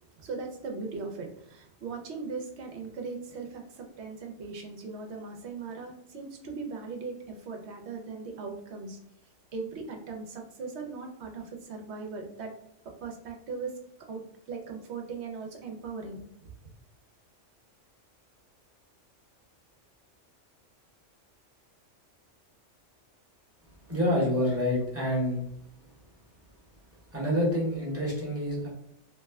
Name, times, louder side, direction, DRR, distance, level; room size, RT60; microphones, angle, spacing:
voice 1, 0.0-9.0 9.5-12.5 13.0-13.7 14.1-14.2 14.5-16.2 16.6-16.7, right 4 dB, 65° right, 3 dB, 0.9 m, -39 dB
voice 2, 23.9-25.4 27.1-28.7, equal, 15° right, -6 dB, 0.9 m, -27 dB
2.9 x 2.2 x 3.4 m, 0.72 s
omnidirectional pair, 1.3 m